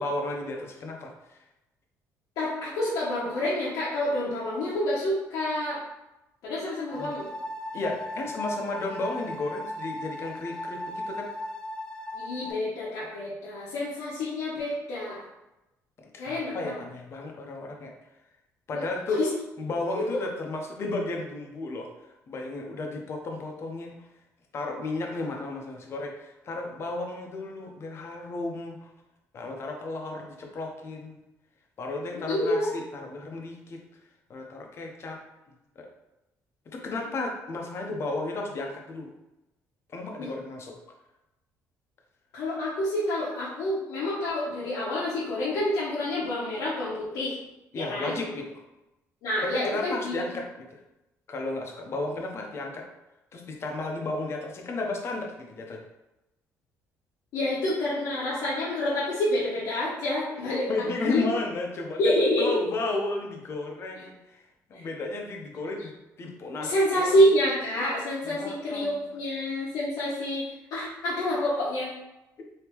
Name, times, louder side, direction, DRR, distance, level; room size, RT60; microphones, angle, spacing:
voice 1, 0.0-1.4 6.9-7.1 7.7-11.3 16.0-17.9 18.7-19.2 19.6-21.9 22.3-24.1 24.5-28.8 29.3-31.2 31.8-33.8 34.3-35.2 35.8-35.9 36.7-39.1 39.9-40.7 47.7-48.6 49.4-50.8 51.3-52.8 53.3-55.9 60.7-62.0 62.4-64.4 64.7-65.9 66.2-67.1 68.2-69.0, left 2 dB, 45° left, 1 dB, 0.7 m, -33 dB
voice 2, 2.4-5.8 6.4-7.3 12.1-15.3 16.2-16.7 18.7-18.8 19.2-19.3 20.1-20.2 32.1-32.8 40.2-40.3 42.3-47.3 47.7-48.1 49.2-50.3 57.3-61.3 62.0-62.6 64.7-64.9 66.6-71.9, left 1 dB, 80° left, -8 dB, 0.9 m, -28 dB
sound 1, 6.9-12.5, left 1 dB, 15° left, 0.4 m, -37 dB
3.5 x 2.8 x 3.0 m, 0.95 s
cardioid pair, 115°, 6 cm